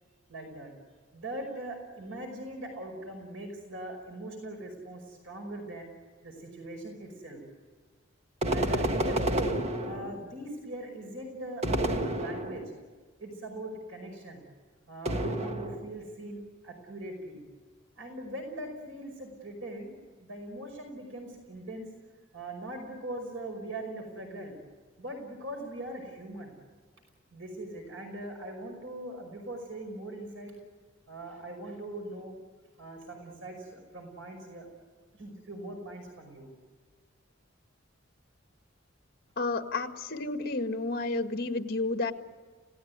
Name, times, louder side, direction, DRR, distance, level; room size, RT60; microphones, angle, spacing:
voice 1, 0.3-0.7 1.1-5.9 6.2-7.4 8.5-12.7 13.2-14.4 14.9-17.4 18.0-20.0 20.3-21.9 22.3-24.6 25.0-26.6 27.3-30.5 31.1-32.4 32.8-34.7 35.1-36.5, right 1 dB, 85° right, 3 dB, 5.4 m, -41 dB
sound 1, 8.4-10.4 11.6-12.8 15.0-16.0, right 1 dB, 35° right, 1.5 m, -30 dB
voice 2, 39.4-42.1, left 3 dB, 55° left, 6 dB, 1.8 m, -31 dB
29.5 x 18.0 x 9.6 m, 1.5 s
head